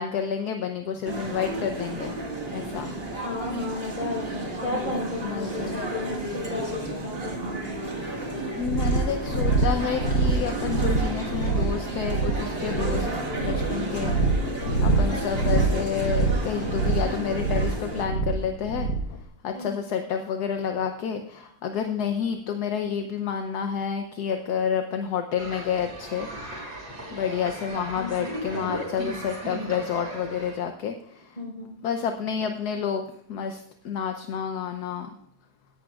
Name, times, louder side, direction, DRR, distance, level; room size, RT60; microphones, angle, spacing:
voice 1, 0.0-2.1 2.5-2.9 5.2-5.8 8.6-14.2 14.8-18.9 19.4-26.3 27.1-31.0 31.8-33.6 33.8-35.1, left 7 dB, 70° left, 6 dB, 1.3 m, -29 dB
sound 1, 1.0-18.0, right 2 dB, 35° right, 2.0 m, -32 dB
voice 2, 3.2-6.2 6.5-7.6 14.6-15.0 19.5-19.7 27.9-28.3 31.4-31.7, left 2 dB, 30° left, -3 dB, 5.2 m, -33 dB
sound 2, 8.6-19.2, right 3 dB, 90° left, 1.6 m, -25 dB
sound 3, 25.4-30.6, right 1 dB, 75° right, 4.6 m, -36 dB
17.5 x 11.5 x 2.4 m, 0.77 s
omnidirectional pair, 1.8 m